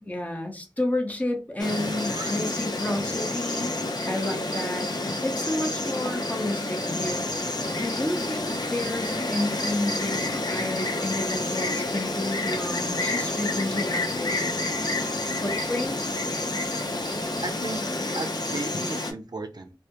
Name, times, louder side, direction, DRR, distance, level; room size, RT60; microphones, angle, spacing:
voice 1, 0.0-3.7 4.1-4.9 5.2-14.6 15.4-16.2, left 1 dB, 20° left, 0.7 m, -31 dB
Insect, 1.6-19.1, left 2 dB, 60° left, 0.5 m, -29 dB
sound 1, 7.1-17.9, left 1 dB, 80° left, 0.9 m, -44 dB
voice 2, 17.4-17.8 18.1-19.7, right 3 dB, 60° right, 0.4 m, -35 dB
2.2 x 2.0 x 2.8 m
wide cardioid pair, 45°, 8 cm